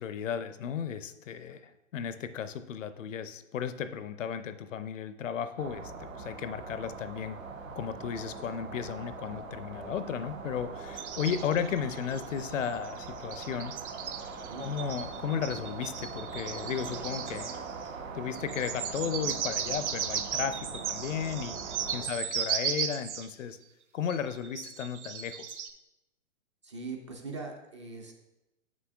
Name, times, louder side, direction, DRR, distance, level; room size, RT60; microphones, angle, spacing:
voice 1, 0.0-7.4 7.7-13.8 14.6-17.6 18.1-23.6 23.9-25.6, left 8 dB, 65° left, 12 dB, 0.6 m, -35 dB
sound 1, 5.6-22.0, right 4 dB, 75° right, 1.1 m, -42 dB
sound 2, 11.0-12.5 12.9-17.9 18.3-23.3 24.1-25.7, right 8 dB, 60° right, 0.7 m, -36 dB
voice 2, 26.6-28.1, right 4 dB, 25° right, 2 dB, 0.4 m, -42 dB
7.6 x 6.1 x 2.5 m, 0.93 s
hypercardioid pair, 130°, 40 cm